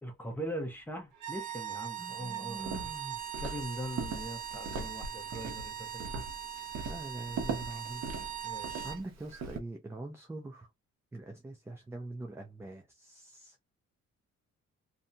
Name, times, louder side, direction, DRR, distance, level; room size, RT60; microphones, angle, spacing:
voice 1, 0.0-2.9 3.4-6.1 8.4-8.9, equal, 5° left, 0.8 m, -41 dB
sound 1, 1.1-9.0, right 10 dB, 85° right, 1.4 m, -41 dB
voice 2, 2.0-3.2 6.8-8.1 8.3-8.5 8.8-10.7 11.1-13.6, right 2 dB, 10° right, 0.4 m, -44 dB
Walk footsteps, 2.6-9.6, right 4 dB, 60° right, 0.9 m, -40 dB
2.6 x 2.6 x 2.2 m
cardioid pair, 145°, 30 cm